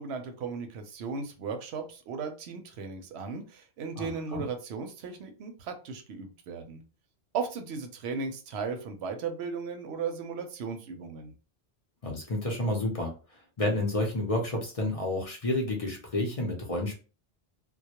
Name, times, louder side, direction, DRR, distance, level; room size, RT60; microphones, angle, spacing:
voice 1, 0.0-6.8 7.3-11.3, right 5 dB, 85° right, 6 dB, 0.8 m, -36 dB
voice 2, 4.0-4.4 12.0-17.0, left 1 dB, 40° left, 0 dB, 0.6 m, -30 dB
2.2 x 2.0 x 2.8 m, 0.34 s
omnidirectional pair, 1.1 m